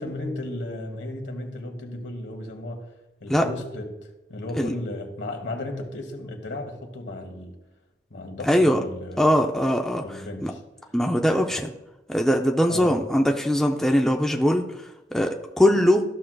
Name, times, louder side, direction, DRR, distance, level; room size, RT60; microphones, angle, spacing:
voice 1, 0.0-2.9 3.2-7.6 8.1-9.3 10.0-10.6 12.7-13.0, left 1 dB, 80° left, 3 dB, 1.3 m, -34 dB
voice 2, 8.4-8.8 9.2-10.0 10.4-10.5 10.9-11.7 12.1-16.0, equal, ahead, 1 dB, 0.4 m, -21 dB
14.0 x 6.1 x 2.3 m, 0.99 s
head